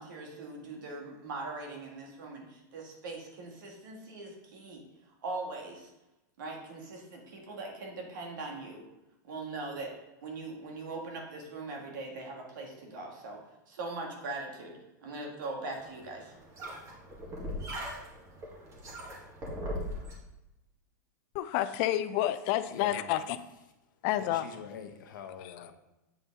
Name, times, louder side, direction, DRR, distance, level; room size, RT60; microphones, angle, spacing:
voice 1, 0.0-4.8 5.2-5.9 6.4-8.8 9.2-9.9 10.2-13.4 13.7-16.3, right 3 dB, 80° right, 0 dB, 1.8 m, -41 dB
sound 1, 15.8-20.1, equal, 30° right, 1.7 m, -40 dB
voice 2, 21.3-23.4 24.0-24.5 25.4-25.7, left 13 dB, 45° left, 13 dB, 0.4 m, -30 dB
voice 3, 22.7-23.0 24.2-25.7, left 7 dB, 80° left, 5 dB, 0.9 m, -43 dB
7.9 x 4.0 x 3.6 m, 0.96 s
supercardioid pair, 130°, 10 cm